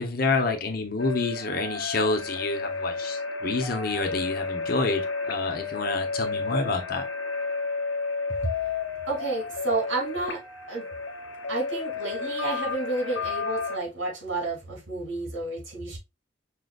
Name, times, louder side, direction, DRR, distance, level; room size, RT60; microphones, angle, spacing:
voice 1, 0.0-7.1, left 3 dB, 45° left, 0.9 m, -28 dB
sound 1, 1.0-13.8, left 4 dB, 85° left, 0.8 m, -32 dB
voice 2, 9.0-10.4 10.7-10.9 11.5-16.0, right 2 dB, 80° right, 2.9 m, -30 dB
5.5 x 3.9 x 2.4 m
head